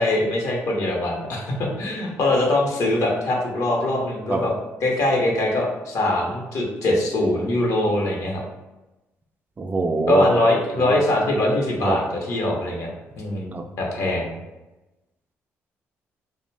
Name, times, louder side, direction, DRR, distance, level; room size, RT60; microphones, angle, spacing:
voice 1, 0.0-4.5 4.8-8.4 10.1-12.9 13.2-14.4, left 1 dB, 65° left, -1 dB, 0.7 m, -22 dB
voice 2, 9.6-10.3 10.8-11.0 11.8-12.0 13.5-13.6, right 3 dB, 30° right, 5 dB, 0.3 m, -23 dB
2.5 x 2.0 x 3.2 m, 1.0 s
supercardioid pair, 65°, 6 cm